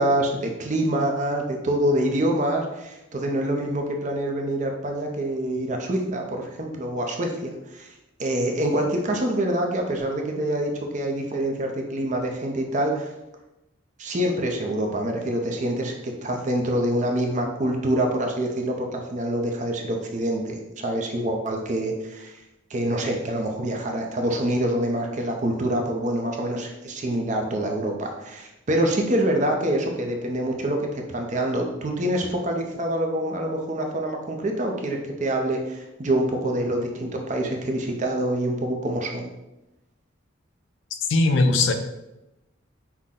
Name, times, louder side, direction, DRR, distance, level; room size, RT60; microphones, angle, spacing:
voice 1, 0.0-7.9 8.2-13.1 14.0-22.4 22.7-39.3, right 1 dB, 40° right, 2 dB, 0.5 m, -26 dB
voice 2, 41.1-41.7, left 2 dB, 70° left, 6 dB, 0.5 m, -19 dB
5.8 x 2.1 x 3.6 m, 0.95 s
head